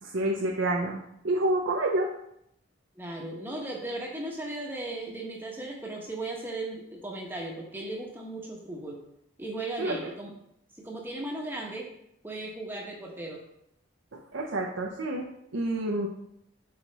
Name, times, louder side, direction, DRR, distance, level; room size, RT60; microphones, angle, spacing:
voice 1, 0.0-2.1 9.8-10.1 14.1-16.1, right 1 dB, 80° right, -1 dB, 0.7 m, -29 dB
voice 2, 3.0-9.0 9.4-10.3 10.8-11.9 12.2-13.4, right 2 dB, 10° right, -2 dB, 1.0 m, -36 dB
6.4 x 4.4 x 4.0 m, 0.76 s
head